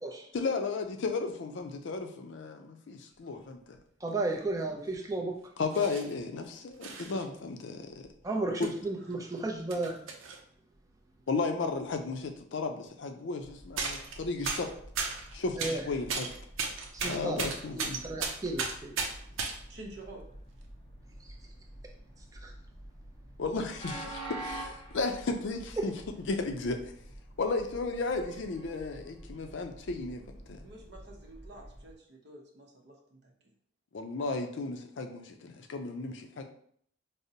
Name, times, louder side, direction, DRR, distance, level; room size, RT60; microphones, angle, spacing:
voice 1, 0.3-3.8 5.6-7.9 8.6-8.7 11.3-14.7 15.3-16.3 17.0-18.2 23.4-25.9 26.3-26.8 27.4-30.2 30.5-30.6 33.9-36.4, left 3 dB, 65° left, 5 dB, 0.4 m, -34 dB
voice 2, 4.0-5.4 8.2-10.0 15.6-15.8 16.9-19.0 22.4-22.5, right 2 dB, 15° right, 2 dB, 0.4 m, -34 dB
sound 1, 4.1-4.2 4.9-5.1 5.7-6.2 6.8-7.2 8.0-8.1 8.6-8.7 9.1-10.4 11.9-12.0 12.2-12.4 13.8-14.2 14.4-15.8 16.1-19.6 20.4-20.6, right 4 dB, 90° right, 0.5 m, -35 dB
voice 3, 9.0-9.6 19.7-20.2 30.6-33.3, right 2 dB, 55° right, 0 dB, 0.7 m, -50 dB
Train, 13.4-31.9, right 1 dB, 20° left, 1.0 m, -48 dB
5.0 x 2.0 x 2.7 m, 0.63 s
head